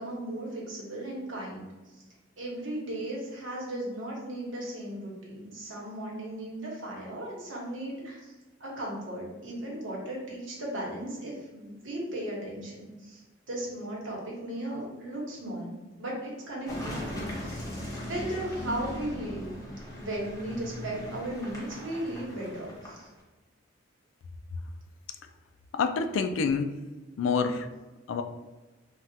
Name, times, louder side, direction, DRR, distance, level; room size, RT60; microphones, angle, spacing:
voice 1, 0.0-1.7 2.0-2.1 2.4-8.3 8.6-15.7 16.0-19.5 19.9-23.1, right 1 dB, 75° right, -3 dB, 1.1 m, -36 dB
Car passing by / Engine, 16.7-23.2, left 1 dB, 20° left, 0.7 m, -39 dB
voice 2, 25.7-26.8 27.2-27.7 28.1-28.2, left 5 dB, 75° left, 9 dB, 0.3 m, -27 dB
3.3 x 2.3 x 2.7 m, 1.2 s
head